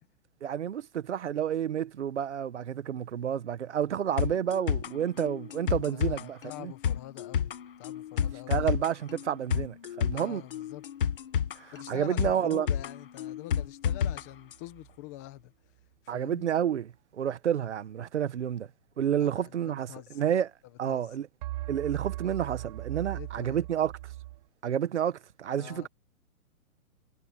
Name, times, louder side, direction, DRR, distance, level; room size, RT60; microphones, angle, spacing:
voice 1, 0.4-6.7 8.5-10.4 11.5-12.7 16.1-18.7 19.0-20.5 20.8-21.3 21.7-23.9 24.6-25.9, right 9 dB, 50° right, 1.5 m, -30 dB
sound 1, 4.2-14.2 14.5-14.6, left 8 dB, 40° left, 1.7 m, -31 dB
voice 2, 5.9-7.5 7.8-8.7 10.1-11.1 11.7-15.5 16.0-16.5 19.2-20.2 20.9-21.1 23.1-23.6 25.6-25.9, left 16 dB, 10° left, 1.1 m, -45 dB
sound 2, 14.0-14.9 21.4-24.4, right 17 dB, 30° right, 7.6 m, -39 dB
hypercardioid pair, 180°, 43 cm